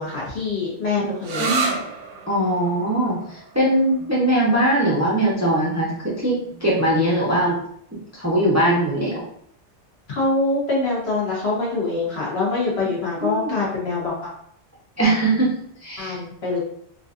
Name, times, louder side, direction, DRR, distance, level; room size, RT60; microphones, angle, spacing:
voice 1, 0.0-1.7 10.1-14.3 16.0-16.6, left 3 dB, 60° left, -5 dB, 1.5 m, -24 dB
sound 1, 1.2-8.6, right 4 dB, 60° right, 0.7 m, -33 dB
voice 2, 1.4-1.8 2.3-7.6 8.1-9.2 13.2-13.5 15.0-15.5 15.8-16.2, right 1 dB, 15° right, -6 dB, 0.6 m, -21 dB
3.9 x 2.5 x 2.5 m, 0.66 s
omnidirectional pair, 1.2 m